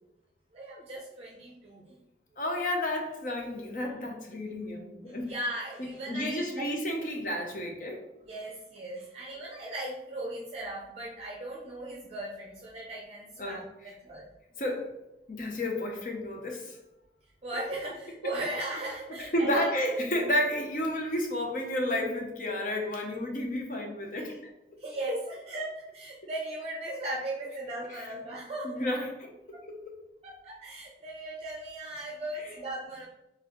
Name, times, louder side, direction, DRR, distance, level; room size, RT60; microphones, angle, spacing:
voice 1, 0.5-1.9 5.2-6.7 8.2-14.3 17.4-19.7 24.2-24.4 24.8-28.8 29.5-29.6 30.2-33.1, right 1 dB, 35° right, -3 dB, 0.5 m, -37 dB
voice 2, 2.4-5.3 5.8-8.0 13.4-13.6 14.6-14.9 15.3-16.8 19.2-24.3 27.9-28.1 28.6-30.0 32.4-32.5, left 1 dB, 45° left, 2 dB, 0.7 m, -31 dB
3.9 x 3.5 x 3.0 m, 0.94 s
head